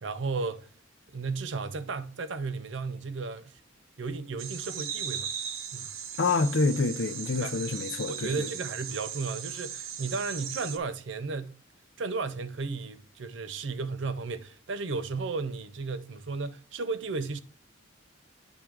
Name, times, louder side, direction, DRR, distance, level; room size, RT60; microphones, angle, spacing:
voice 1, 0.0-0.7 1.1-3.6 4.0-5.3 5.7-5.9 7.4-7.6 8.1-11.6 12.0-17.4, right 4 dB, 60° right, 0.5 m, -34 dB
sound 1, 4.4-10.8, right 8 dB, 85° right, 0.8 m, -38 dB
voice 2, 6.2-8.5, left 3 dB, 60° left, 0.6 m, -27 dB
8.9 x 3.6 x 4.7 m
head